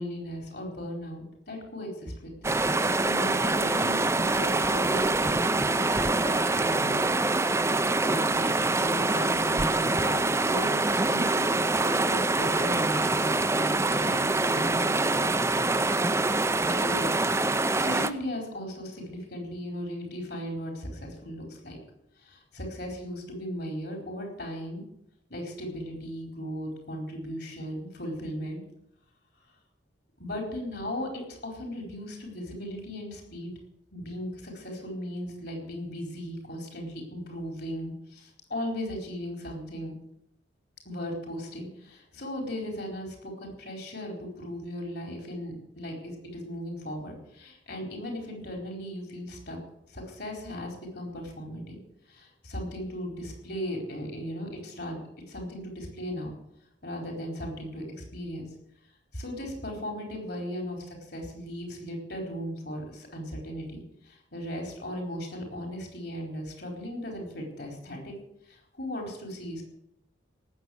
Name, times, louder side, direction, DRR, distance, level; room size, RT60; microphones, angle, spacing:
voice 1, 0.0-7.0 8.0-15.3 16.7-21.8 22.2-24.8 25.3-28.6 30.2-33.5 33.9-39.9 40.8-49.6 49.9-51.8 52.1-55.0 55.3-56.3 56.8-58.5 59.1-60.8 61.1-68.2 68.5-69.6, equal, 60° left, 1 dB, 4.5 m, -37 dB
sound 1, 2.4-18.1, right 2 dB, 15° right, 0.6 m, -25 dB
18.0 x 7.5 x 9.4 m, 0.79 s
head